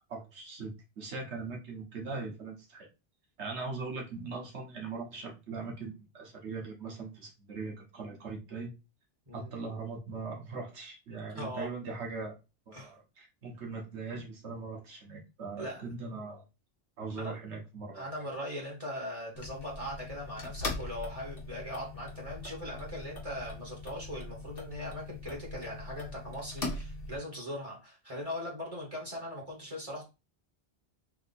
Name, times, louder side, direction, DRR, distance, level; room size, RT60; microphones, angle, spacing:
voice 1, 0.1-2.9 3.4-8.7 9.3-12.4 12.7-16.4 17.0-18.1, right 4 dB, 90° right, 0 dB, 1.4 m, -40 dB
voice 2, 11.3-11.7 12.7-12.9 15.6-15.8 17.2-17.4 17.9-30.0, left 1 dB, 30° right, -3 dB, 1.7 m, -40 dB
sound 1, 19.4-27.2, left 2 dB, 60° left, 1.2 m, -41 dB
3.6 x 2.7 x 4.0 m, 0.27 s
omnidirectional pair, 1.1 m